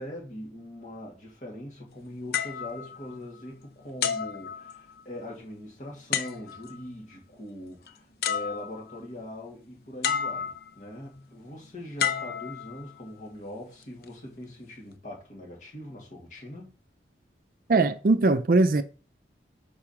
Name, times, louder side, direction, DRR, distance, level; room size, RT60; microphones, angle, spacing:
voice 1, 0.0-16.7, left 1 dB, 45° left, 2.2 m, -41 dB
sound 1, 2.3-3.5 4.0-5.2 6.1-6.8 7.9-8.0 8.2-9.0 10.0-10.8 12.0-13.1 13.8-14.1, left 8 dB, 60° left, 0.5 m, -31 dB
voice 2, 17.7-18.8, right 3 dB, 50° right, 0.4 m, -21 dB
4.8 x 4.8 x 5.8 m
head